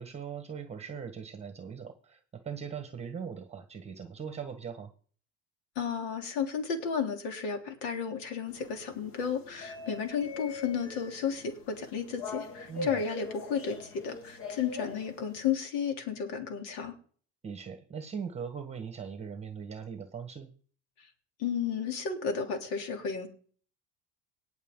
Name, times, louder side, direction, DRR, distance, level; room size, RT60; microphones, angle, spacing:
voice 1, 0.0-4.9 12.7-12.9 17.4-20.5, right 6 dB, 20° right, 8 dB, 1.4 m, -40 dB
voice 2, 5.7-16.9 21.4-23.3, left 6 dB, 80° left, 5 dB, 3.3 m, -33 dB
sound 1, 8.5-15.5, left 4 dB, 45° left, 2.0 m, -42 dB
19.0 x 6.5 x 3.8 m, 0.43 s
cardioid pair, 140°, 29 cm